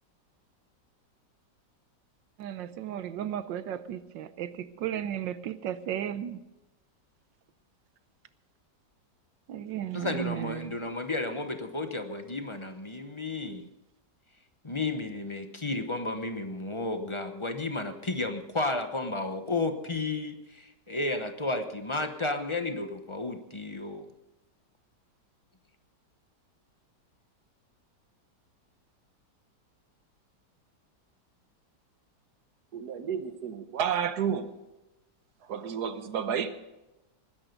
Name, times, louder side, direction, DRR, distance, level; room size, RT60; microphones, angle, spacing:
voice 1, 2.4-6.4 9.5-10.7, right 10 dB, 85° right, 13 dB, 1.5 m, -34 dB
voice 2, 9.9-13.7 14.6-24.1, left 2 dB, 25° left, 7 dB, 0.7 m, -32 dB
voice 3, 32.7-34.5 35.4-36.5, right 8 dB, 65° right, 10 dB, 1.5 m, -31 dB
19.5 x 10.5 x 5.3 m, 0.99 s
omnidirectional pair, 1.9 m